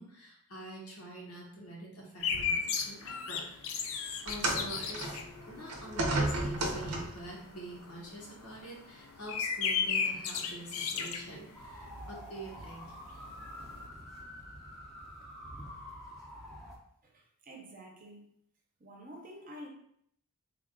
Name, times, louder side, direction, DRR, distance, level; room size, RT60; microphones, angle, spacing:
voice 1, 0.0-5.2 5.5-12.9, right 1 dB, 90° left, -3 dB, 1.2 m, -46 dB
sound 1, 2.2-12.3 12.6-12.7 12.9-13.9, left 6 dB, 65° left, 0.4 m, -35 dB
sound 2, 4.3-7.3 8.3-8.5 9.3-9.4, right 2 dB, 85° right, 0.6 m, -33 dB
sound 3, 11.5-16.8, equal, ahead, 0.6 m, -47 dB
voice 2, 17.0-18.3 18.8-19.7, equal, 40° right, 0 dB, 0.7 m, -49 dB
3.5 x 2.4 x 3.6 m, 0.68 s
head